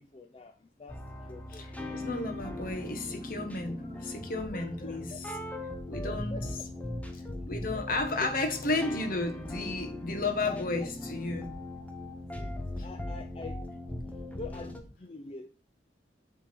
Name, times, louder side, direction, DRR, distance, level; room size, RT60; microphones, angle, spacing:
voice 1, 0.0-1.7 3.8-4.2 4.5-5.2 6.0-6.7 8.1-8.3 8.9-9.0 10.4-10.9 12.3-13.6 14.3-15.5, left 3 dB, 35° left, 5 dB, 0.5 m, -45 dB
sound 1, 0.9-14.8, left 1 dB, 10° left, 0.9 m, -39 dB
voice 2, 1.5-5.3 5.9-6.6 7.1-11.5 12.8-12.9, left 2 dB, 55° left, 6 dB, 1.3 m, -33 dB
7.3 x 3.6 x 6.0 m, 0.41 s
head